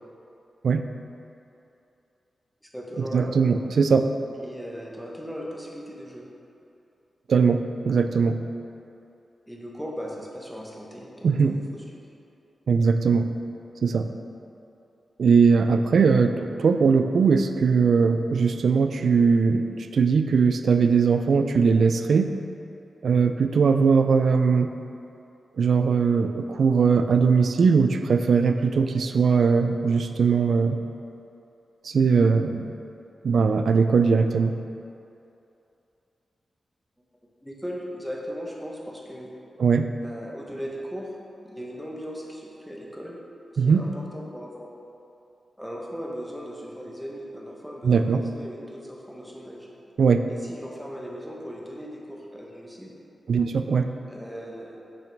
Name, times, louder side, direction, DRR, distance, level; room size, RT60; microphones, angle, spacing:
voice 1, 2.6-3.4 4.4-6.3 9.5-11.8 37.4-39.3 40.0-41.1 41.4-43.2 43.5-44.7 45.6-49.7 50.3-53.0 54.1-54.8, equal, ahead, -3 dB, 0.8 m, -38 dB
voice 2, 3.1-4.1 7.3-8.4 11.2-11.6 12.7-13.3 13.8-14.1 15.2-22.3 23.0-24.7 25.6-30.8 31.8-32.7 33.2-34.5 39.6-39.9 43.6-43.9 47.8-48.2 50.0-50.2 53.3-53.9, right 5 dB, 70° right, 8 dB, 0.3 m, -20 dB
6.2 x 5.9 x 3.3 m, 2.7 s
wide cardioid pair, 130°, 0 cm